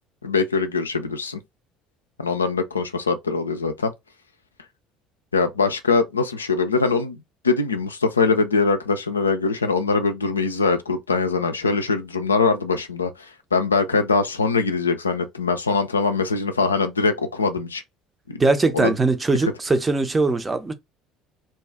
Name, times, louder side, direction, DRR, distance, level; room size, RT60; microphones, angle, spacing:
voice 1, 0.2-1.4 2.2-3.9 5.3-7.2 7.4-17.8 18.3-18.4 18.7-18.9, left 4 dB, 80° left, 0.3 m, -22 dB
voice 2, 18.4-20.7, right 3 dB, 20° right, 0.5 m, -21 dB
2.6 x 2.2 x 3.5 m
figure-of-eight pair, 60°, 0 cm